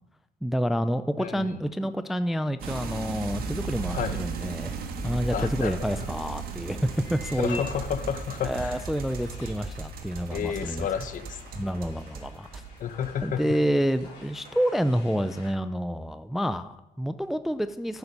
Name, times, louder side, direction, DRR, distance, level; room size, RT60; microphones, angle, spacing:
voice 1, 0.4-4.8 5.0-7.7 8.4-10.9 11.5-12.6 13.2-18.0, equal, ahead, 12 dB, 0.3 m, -28 dB
voice 2, 1.2-1.6 3.9-4.2 5.3-5.8 7.4-8.8 10.3-11.7 12.8-13.6, left 8 dB, 50° left, 11 dB, 0.9 m, -31 dB
sound 1, 2.6-13.5 13.9-14.5, right 4 dB, 60° right, 1.4 m, -36 dB
sound 2, 6.9-15.5, left 3 dB, 90° left, 3.3 m, -49 dB
9.5 x 7.1 x 5.3 m, 0.92 s
cardioid pair, 110°, 17 cm